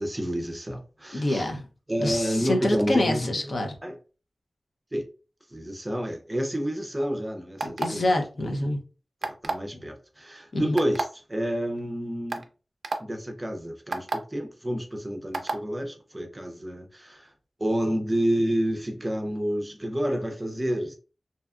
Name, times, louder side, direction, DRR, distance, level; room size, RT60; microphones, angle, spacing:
voice 1, 0.0-1.5 1.9-3.3 3.8-3.9 4.9-5.1 5.5-8.1 9.4-11.0 11.3-12.5 13.0-17.3 17.6-21.0, equal, 20° right, 0.5 m, -29 dB
voice 2, 1.1-1.6 2.0-3.8 7.8-8.8 10.5-10.7, left 1 dB, 60° left, 0.6 m, -26 dB
sound 1, 7.6-8.1 9.2-9.7 10.8-11.0 11.8-11.9 12.3-12.4 12.8-13.0 13.9-14.2 15.3-15.6, right 3 dB, 80° right, 0.3 m, -28 dB
2.7 x 2.3 x 2.3 m
wide cardioid pair, 90°, 0 cm